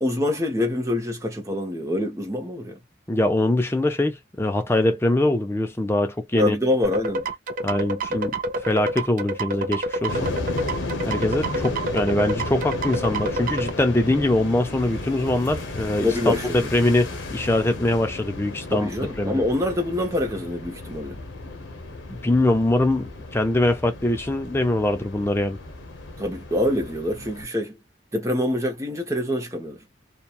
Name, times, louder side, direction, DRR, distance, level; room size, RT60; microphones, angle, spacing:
voice 1, 0.0-2.8 6.4-7.3 16.0-16.7 18.7-21.2 26.2-27.8 28.1-29.8, left 1 dB, 15° right, 0.8 m, -25 dB
voice 2, 3.1-6.6 7.6-8.3 8.6-10.3 11.0-18.9 19.2-19.4 22.1-25.6, left 1 dB, 15° left, 0.4 m, -23 dB
sound 1, 6.8-13.7, right 2 dB, 45° right, 0.5 m, -28 dB
sound 2, 10.1-27.4, left 2 dB, 90° left, 0.8 m, -34 dB
2.8 x 2.3 x 2.3 m
head